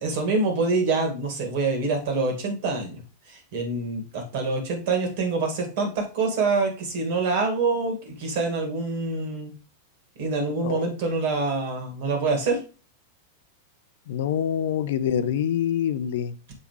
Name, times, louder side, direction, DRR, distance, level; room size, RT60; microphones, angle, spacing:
voice 1, 0.0-3.0 3.3-9.5 10.2-12.6, right 3 dB, 50° right, 3 dB, 2.2 m, -26 dB
voice 2, 14.1-16.3, left 9 dB, 55° left, 13 dB, 0.5 m, -25 dB
7.3 x 4.9 x 3.2 m, 0.34 s
figure-of-eight pair, 90°, 0 cm